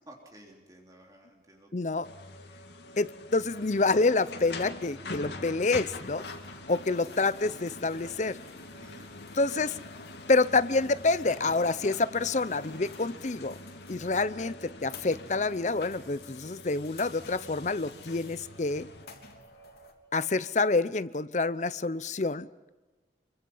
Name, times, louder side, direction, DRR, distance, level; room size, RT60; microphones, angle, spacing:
voice 1, 0.0-2.1 2.8-2.9 8.8-9.1, right 1 dB, 20° right, 1 dB, 3.4 m, -54 dB
voice 2, 1.7-2.1 3.0-6.2 6.7-8.4 9.3-9.8 10.3-13.6 13.9-18.9 20.1-22.5, left 3 dB, 40° left, 16 dB, 0.7 m, -27 dB
sound 1, 2.0-19.1, left 2 dB, 80° left, 2.3 m, -45 dB
sound 2, 2.1-20.9, right 6 dB, 20° left, 2.5 m, -59 dB
sound 3, 5.7-19.9, left 4 dB, 60° left, 3.3 m, -53 dB
26.5 x 24.5 x 5.6 m, 1.2 s
head